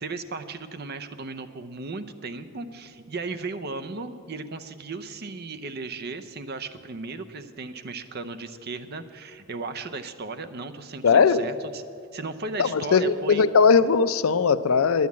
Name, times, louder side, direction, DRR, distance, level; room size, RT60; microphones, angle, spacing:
voice 1, 0.0-11.8 12.1-13.5, right 3 dB, 50° right, 11 dB, 0.6 m, -36 dB
voice 2, 11.0-11.4 12.6-15.1, left 5 dB, 80° left, 14 dB, 0.5 m, -19 dB
10.5 x 9.4 x 8.4 m, 2.5 s
head